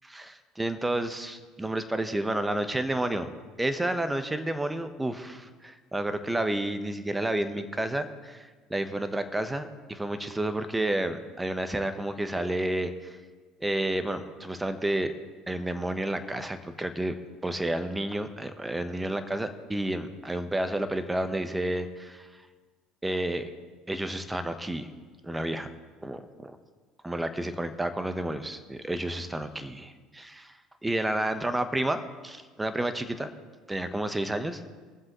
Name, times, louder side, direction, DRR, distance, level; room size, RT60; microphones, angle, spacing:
voice 1, 0.0-3.3 3.6-13.2 13.6-15.1 15.5-17.1 17.4-22.3 23.0-23.5 23.9-24.9 25.2-25.7 26.0-26.6 27.0-29.9 30.8-33.3 33.7-34.7, right 1 dB, 10° right, 9 dB, 1.0 m, -30 dB
22.0 x 7.5 x 3.1 m, 1.4 s
hypercardioid pair, 65°, 0 cm